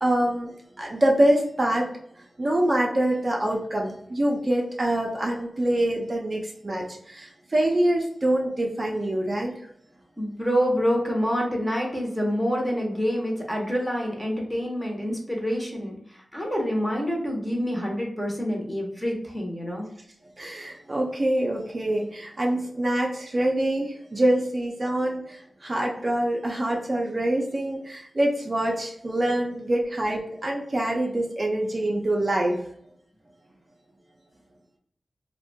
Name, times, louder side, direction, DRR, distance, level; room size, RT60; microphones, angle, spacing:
voice 1, 0.0-1.9 2.4-9.5 20.4-32.6, right 1 dB, 40° right, -1 dB, 0.4 m, -25 dB
voice 2, 10.2-19.9, equal, 10° left, -1 dB, 0.7 m, -27 dB
2.6 x 2.1 x 2.6 m, 0.70 s
wide cardioid pair, 80°, 0 cm